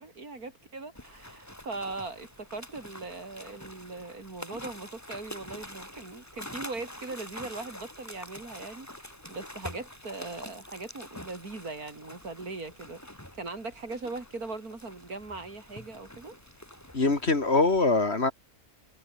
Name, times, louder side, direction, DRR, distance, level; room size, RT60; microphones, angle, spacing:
voice 1, 0.0-13.0 13.4-16.4, right 3 dB, 75° right, 4.4 m, -40 dB
sound 1, 0.9-17.8, left 1 dB, 10° left, 3.6 m, -46 dB
voice 2, 16.9-18.3, left 3 dB, 45° left, 2.6 m, -23 dB
omnidirectional pair, 1.6 m